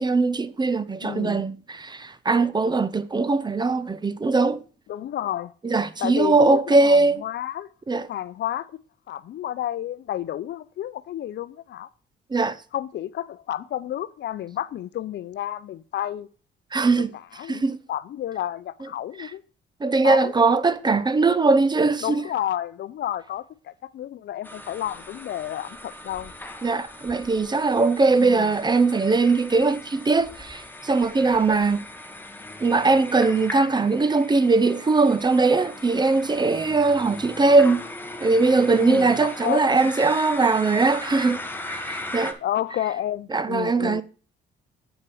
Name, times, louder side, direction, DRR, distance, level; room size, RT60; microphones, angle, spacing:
voice 1, 0.0-4.6 5.6-7.2 7.9-8.1 12.3-12.6 16.7-17.1 17.5-17.8 19.2-19.3 19.8-22.2 26.6-31.8 32.6-37.8 38.2-41.4 41.7-42.4 43.3-44.0, right 3 dB, 20° right, 0.5 m, -20 dB
voice 2, 1.0-1.5 4.9-5.5 6.0-7.7 8.1-8.7 9.1-11.9 12.7-16.3 17.1-17.6 17.9-19.4 20.0-20.3 22.0-26.3 28.2-28.5 38.8-39.8 42.4-44.0, left 12 dB, 60° left, 0.5 m, -31 dB
sound 1, 24.4-42.3, left 2 dB, 10° left, 1.2 m, -39 dB
8.2 x 5.8 x 4.7 m
cardioid pair, 90°, 20 cm